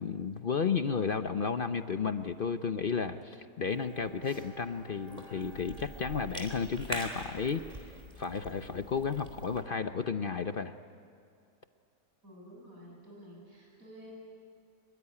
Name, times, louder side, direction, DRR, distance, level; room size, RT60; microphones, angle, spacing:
voice 1, 0.0-7.6 8.2-10.7, left 5 dB, 55° left, 9 dB, 0.6 m, -33 dB
Bowed string instrument, 3.7-7.5 7.8-7.9, left 1 dB, 15° left, 6.5 m, -55 dB
Cough / Chewing mastication, 3.7-9.6, right 1 dB, 20° right, 3.5 m, -45 dB
voice 2, 12.2-14.1, equal, 50° right, -3 dB, 8.7 m, -51 dB
25.5 x 22.0 x 9.9 m, 2.5 s
omnidirectional pair, 1.8 m